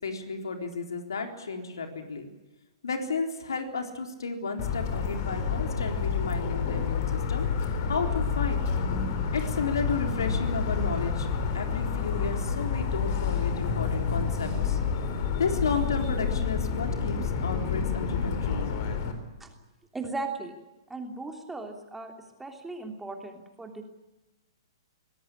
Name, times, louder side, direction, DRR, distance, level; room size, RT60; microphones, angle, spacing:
voice 1, 0.0-2.2 2.8-7.5 7.9-8.6 9.3-11.3 11.5-14.8 15.4-18.8, left 4 dB, 70° left, 5 dB, 3.9 m, -33 dB
Motor vehicle (road) / Siren, 4.6-19.1, left 6 dB, 45° left, 4.1 m, -29 dB
voice 2, 19.9-20.6 20.9-22.1 22.4-23.8, right 3 dB, 5° right, 4 dB, 3.1 m, -37 dB
23.5 x 17.5 x 10.0 m, 1.1 s
figure-of-eight pair, 115°, 2 cm